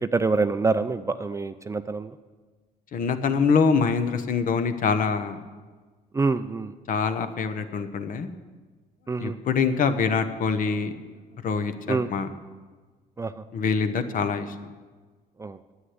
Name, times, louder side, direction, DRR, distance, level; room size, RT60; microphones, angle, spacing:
voice 1, 0.0-2.1 6.1-6.7 9.1-9.4 11.9-12.1 13.2-13.4 15.4-15.6, right 3 dB, 15° right, 11 dB, 0.4 m, -26 dB
voice 2, 2.9-5.4 6.9-8.3 9.2-11.0 11.4-12.3 13.5-14.5, left 5 dB, 55° left, 10 dB, 1.1 m, -24 dB
9.7 x 8.3 x 9.5 m, 1.4 s
cardioid pair, 110°, 17 cm